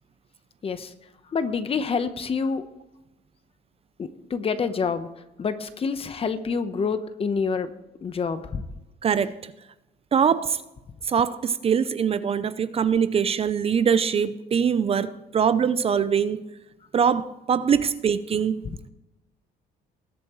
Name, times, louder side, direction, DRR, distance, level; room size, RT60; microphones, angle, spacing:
voice 1, 0.6-0.9 1.3-2.6 4.0-5.1 5.4-7.7 8.0-8.6 18.6-18.8, left 5 dB, 35° left, 1.0 m, -27 dB
voice 2, 9.0-9.5 10.1-10.6 11.1-16.4 16.9-18.6, right 7 dB, 35° right, 0.5 m, -23 dB
20.0 x 8.4 x 3.1 m
cardioid pair, 110°, 17 cm